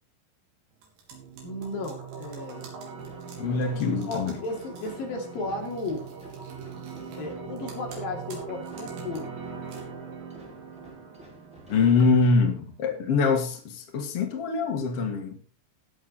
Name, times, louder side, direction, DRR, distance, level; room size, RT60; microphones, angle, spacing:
sound 1, 0.8-5.0 5.6-7.3 7.6-9.2 9.6-9.8, right 5 dB, 85° right, 5.7 m, -51 dB
sound 2, 1.1-12.1, right 5 dB, 70° right, 4.8 m, -41 dB
voice 1, 1.4-2.7 4.1-6.1 7.1-9.4, left 2 dB, 55° left, 0 dB, 4.1 m, -34 dB
sound 3, 3.0-13.1, right 2 dB, ahead, 4.4 m, -52 dB
voice 2, 3.4-4.4 11.7-15.4, left 4 dB, 70° left, 3 dB, 1.3 m, -24 dB
18.0 x 6.7 x 4.1 m, 0.36 s
omnidirectional pair, 5.5 m